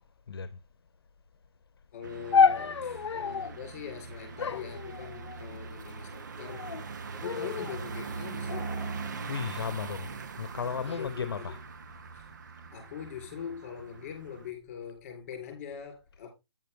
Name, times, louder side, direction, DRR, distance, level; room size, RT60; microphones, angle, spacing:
voice 1, 0.3-0.6 9.3-11.6, left 6 dB, 60° left, 0.9 m, -35 dB
voice 2, 1.9-6.7 7.1-8.8 10.9-11.6 12.1-12.3 12.7-16.3, left 8 dB, 25° left, 3.7 m, -42 dB
sound 1, 2.0-14.5, right 5 dB, 45° right, 0.7 m, -41 dB
sound 2, 2.3-3.6 4.4-5.6 6.4-6.9 7.2-7.8 8.5-9.8 10.5-11.0, left 5 dB, 85° left, 0.6 m, -30 dB
9.1 x 7.4 x 3.4 m
hypercardioid pair, 170°, 14 cm